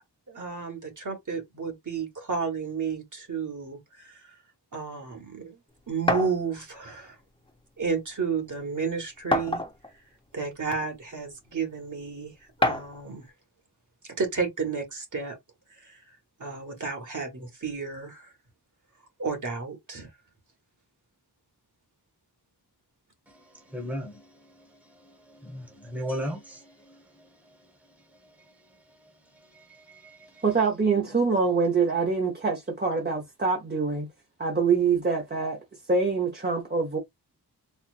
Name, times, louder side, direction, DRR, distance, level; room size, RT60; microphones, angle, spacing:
voice 1, 0.3-4.2 4.7-5.6 5.9-7.2 7.8-9.6 10.3-12.3 12.6-13.2 14.2-15.4 15.8-16.0 16.4-18.3 19.2-20.1, right 5 dB, 45° right, 1.5 m, -32 dB
setting down glass cup, 6.1-6.4 7.5-7.6 8.0-8.1 9.3-9.9 10.8-10.9 12.6-13.0, left 1 dB, 15° left, 0.8 m, -26 dB
voice 2, 23.7-24.3 25.3-27.0 29.5-30.4, equal, 5° right, 1.1 m, -36 dB
voice 3, 30.4-34.1 34.4-35.6 35.9-37.0, right 4 dB, 25° right, 0.8 m, -25 dB
4.3 x 2.5 x 2.4 m
wide cardioid pair, 130°, 41 cm